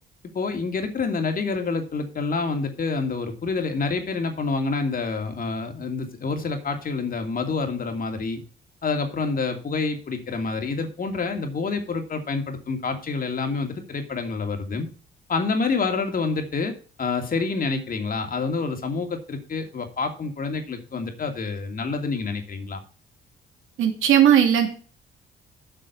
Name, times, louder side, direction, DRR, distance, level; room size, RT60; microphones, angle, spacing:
voice 1, 0.3-8.4 8.8-14.9 15.3-22.8, left 4 dB, 45° left, 5 dB, 2.6 m, -27 dB
voice 2, 23.8-24.7, right 9 dB, 85° right, 4 dB, 2.8 m, -17 dB
7.9 x 6.1 x 8.1 m, 0.39 s
cardioid pair, 90°, 20 cm